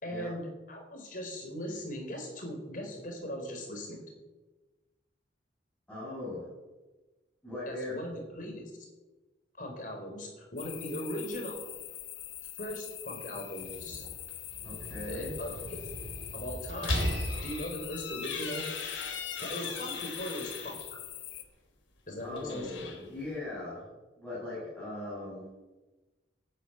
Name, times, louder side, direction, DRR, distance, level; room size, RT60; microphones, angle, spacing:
voice 1, 0.0-4.0 7.7-8.7 9.6-11.6 12.6-14.0 15.1-15.9 16.3-17.0 17.4-18.7 19.4-21.0 22.1-22.7, equal, 45° left, 2 dB, 4.4 m, -39 dB
voice 2, 5.9-6.5 7.4-7.9 14.6-15.3 22.2-23.8 24.2-25.4, left 2 dB, 5° left, -11 dB, 6.8 m, -39 dB
sound 1, 10.6-21.4, left 13 dB, 60° left, 1.2 m, -44 dB
Slam, 13.4-18.1, right 1 dB, 80° right, 3.4 m, -37 dB
sound 2, 16.8-20.9 22.2-23.4, left 6 dB, 85° left, 3.1 m, -39 dB
13.0 x 10.5 x 8.8 m, 1.2 s
head